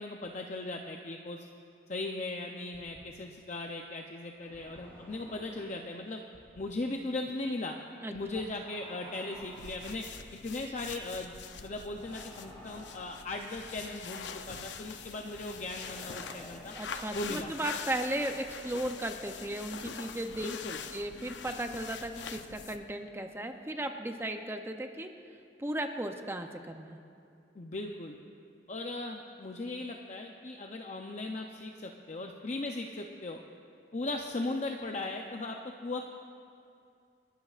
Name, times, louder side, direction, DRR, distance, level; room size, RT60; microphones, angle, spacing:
voice 1, 0.0-1.5 1.9-6.2 6.6-7.8 8.1-10.0 10.4-16.7 17.1-17.5 20.4-20.8 27.5-28.2 28.7-33.4 33.9-36.1, left 2 dB, 40° left, 2 dB, 0.6 m, -38 dB
sound 1, 2.7-3.0 4.3-5.9 6.3-6.6 8.1-10.2 11.7-13.8 15.3-17.4, equal, 10° left, 3.5 m, -52 dB
sound 2, 9.3-22.9, left 6 dB, 85° left, 0.6 m, -44 dB
voice 2, 16.7-20.5 20.9-25.1 25.6-27.0, right 1 dB, 15° right, 5 dB, 0.6 m, -36 dB
29.5 x 12.5 x 2.5 m, 2.5 s
head